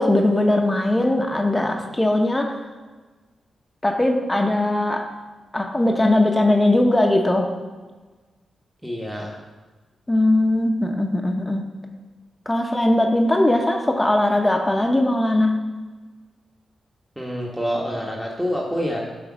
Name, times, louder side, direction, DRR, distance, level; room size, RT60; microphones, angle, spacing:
voice 1, 0.0-2.6 3.8-5.0 5.5-7.5 10.1-11.6 12.5-15.6, left 1 dB, 20° left, 3 dB, 0.9 m, -19 dB
voice 2, 8.8-9.3 17.2-19.0, equal, 5° right, -3 dB, 1.3 m, -27 dB
7.8 x 3.4 x 6.1 m, 1.3 s
supercardioid pair, 45°, 0 cm